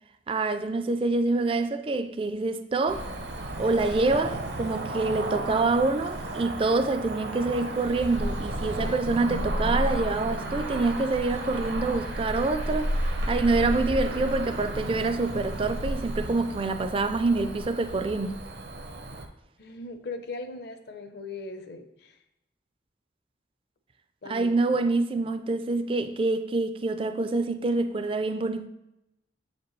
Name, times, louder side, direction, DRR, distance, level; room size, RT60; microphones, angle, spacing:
voice 1, 0.3-3.1 3.6-18.4 24.3-28.7, right 3 dB, 30° right, 0.4 m, -26 dB
Cricket / Motor vehicle (road), 2.9-19.3, right 1 dB, 70° right, 0.7 m, -32 dB
voice 2, 19.6-22.2 24.2-24.8 25.2-25.3, left 3 dB, 60° left, 0.7 m, -39 dB
7.3 x 5.1 x 3.1 m
head